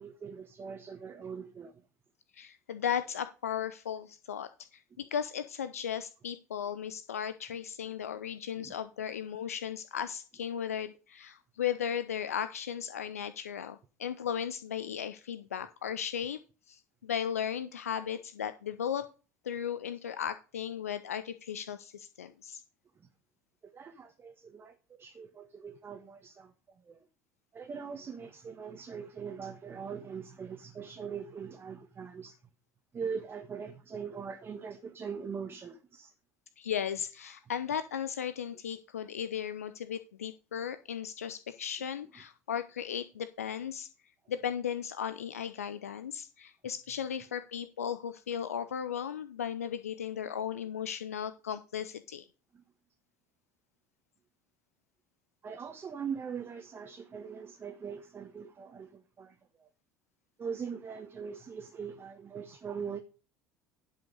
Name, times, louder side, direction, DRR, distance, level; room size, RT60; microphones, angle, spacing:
voice 1, 0.0-1.7 8.6-8.7 23.0-23.1 23.6-27.0 27.5-32.4 32.9-36.1 46.6-46.7 52.5-52.6 55.4-59.7 60.4-63.0, right 6 dB, 30° right, 1.2 m, -41 dB
voice 2, 2.3-16.4 16.7-19.0 19.4-22.6 36.6-43.9 44.3-52.3, left 8 dB, 75° left, 0.5 m, -36 dB
11.0 x 5.6 x 5.3 m
figure-of-eight pair, 65°, 8 cm